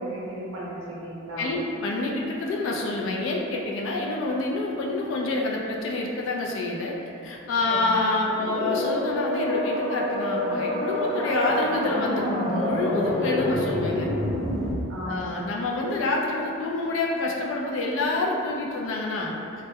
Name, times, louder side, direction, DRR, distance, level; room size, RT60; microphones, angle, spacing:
voice 1, 0.0-1.5 7.6-8.1 14.9-15.5, right 1 dB, 85° right, -7 dB, 0.7 m, -35 dB
voice 2, 1.4-6.9 7.2-14.1 15.0-19.3, left 2 dB, 65° left, -1 dB, 0.3 m, -27 dB
sound 1, 8.2-14.7, left 1 dB, ahead, 0.4 m, -27 dB
2.2 x 2.1 x 2.7 m, 2.6 s
head